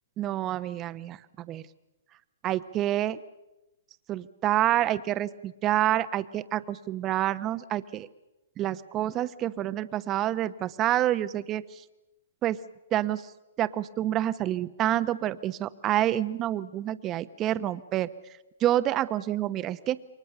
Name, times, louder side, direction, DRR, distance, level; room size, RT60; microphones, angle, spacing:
voice 1, 0.2-1.6 2.4-3.2 4.1-8.1 8.6-11.8 12.4-12.6 12.9-13.3 13.6-18.1 18.6-20.0, right 13 dB, 25° right, 13 dB, 1.0 m, -28 dB
28.5 x 23.5 x 6.8 m, 0.98 s
hypercardioid pair, 135°, 0 cm